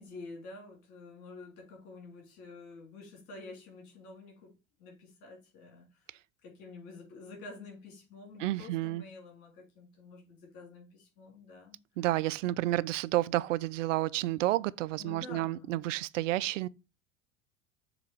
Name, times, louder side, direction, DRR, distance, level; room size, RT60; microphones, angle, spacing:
voice 1, 0.0-11.8 12.4-12.6 15.0-15.8, left 3 dB, 60° left, 3.4 m, -49 dB
voice 2, 8.4-9.0 12.0-16.7, right 16 dB, 65° right, 0.5 m, -30 dB
7.0 x 3.4 x 4.4 m
figure-of-eight pair, 70°, 41 cm